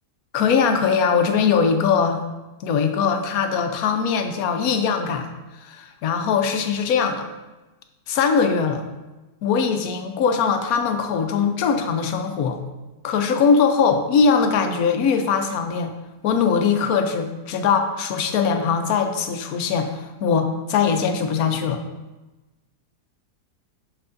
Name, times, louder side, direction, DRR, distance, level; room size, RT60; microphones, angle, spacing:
voice 1, 0.3-2.2 2.6-5.3 5.6-7.3 8.1-8.8 9.4-12.6 13.0-15.9 16.2-21.8, left 6 dB, 70° left, 6 dB, 1.0 m, -21 dB
6.7 x 5.7 x 2.5 m, 1.1 s
omnidirectional pair, 1.7 m